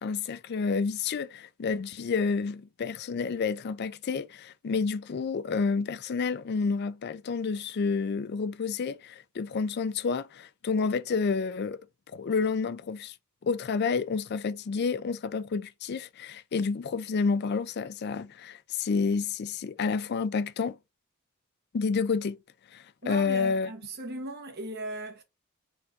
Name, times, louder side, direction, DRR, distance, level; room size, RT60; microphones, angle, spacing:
voice 1, 0.0-11.8 12.1-13.1 13.4-20.8 21.7-22.4 22.7-23.7, left 5 dB, 45° left, 0.4 m, -29 dB
voice 2, 23.0-25.2, right 1 dB, 45° right, 1.0 m, -37 dB
4.5 x 2.5 x 4.0 m
head